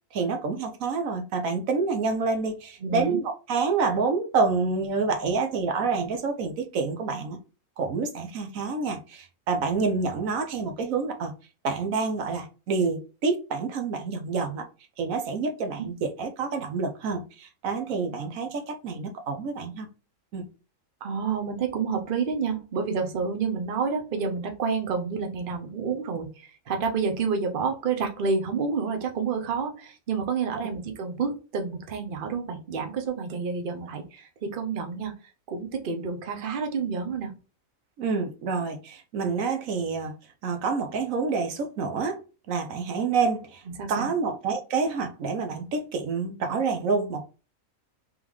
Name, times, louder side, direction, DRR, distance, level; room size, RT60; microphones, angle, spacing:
voice 1, 0.1-7.4 7.8-11.3 11.6-14.6 15.0-19.9 20.3-20.5 38.0-40.1 40.4-42.2 42.5-43.6 43.9-47.2, right 4 dB, 75° right, 1.1 m, -28 dB
voice 2, 2.8-3.2 21.0-35.1 35.5-37.3 43.8-44.1, right 5 dB, 45° right, 0.9 m, -29 dB
3.6 x 3.6 x 3.0 m
omnidirectional pair, 1.5 m